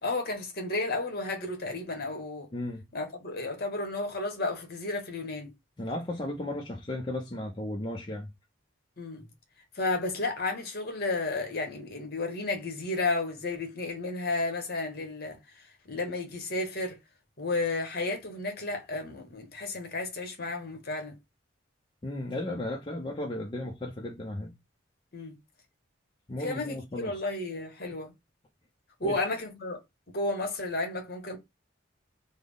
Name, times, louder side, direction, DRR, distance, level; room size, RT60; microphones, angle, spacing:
voice 1, 0.0-2.5 2.9-5.5 9.0-9.3 9.7-15.4 15.9-17.0 17.4-21.1 25.1-25.3 26.4-28.1 29.0-29.8 30.1-31.4, left 2 dB, 50° left, 1.1 m, -32 dB
voice 2, 5.8-8.3 22.0-24.5 26.3-27.2 29.0-29.3, left 1 dB, 25° left, 0.5 m, -35 dB
3.4 x 2.0 x 3.6 m
head